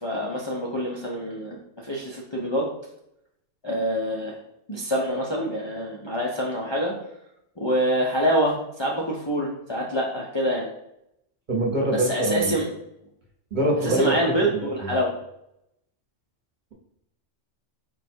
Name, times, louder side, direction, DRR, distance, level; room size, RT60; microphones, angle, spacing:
voice 1, 0.0-2.7 3.6-4.4 4.7-6.9 7.6-10.7 11.9-12.7 13.8-15.1, equal, 35° left, -4 dB, 0.4 m, -26 dB
voice 2, 11.5-12.5 13.5-14.9, right 1 dB, 45° right, -1 dB, 1.0 m, -24 dB
4.6 x 2.3 x 4.3 m, 0.80 s
omnidirectional pair, 1.2 m